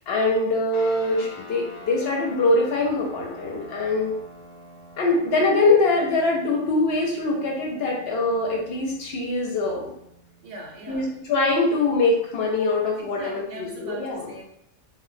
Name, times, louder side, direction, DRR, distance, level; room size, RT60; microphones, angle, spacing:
voice 1, 0.1-4.1 5.0-9.8 10.9-14.3, left 2 dB, 65° left, -1 dB, 0.7 m, -23 dB
sound 1, 0.7-12.5, left 1 dB, 35° left, 0.4 m, -46 dB
voice 2, 10.4-11.3 13.0-14.4, right 1 dB, 70° right, 0 dB, 0.8 m, -40 dB
2.1 x 2.1 x 3.1 m, 0.76 s
omnidirectional pair, 1.2 m